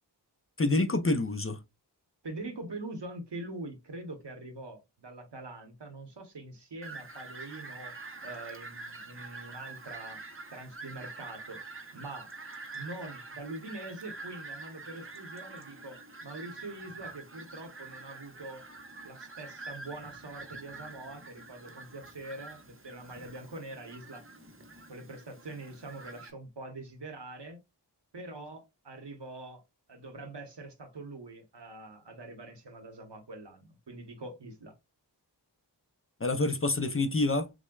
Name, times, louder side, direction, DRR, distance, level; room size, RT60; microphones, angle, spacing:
voice 1, 0.6-1.6 36.2-37.5, left 2 dB, 30° left, 0.5 m, -27 dB
voice 2, 2.2-7.9 8.2-10.2 10.5-11.6 11.9-12.3 12.7-18.7 19.0-24.2 24.9-27.6 28.1-29.6 29.9-34.7, right 2 dB, 75° right, 1.0 m, -44 dB
Fowl, 6.8-26.3, right 3 dB, 30° right, 0.7 m, -46 dB
6.1 x 2.1 x 2.3 m
wide cardioid pair, 45°, 42 cm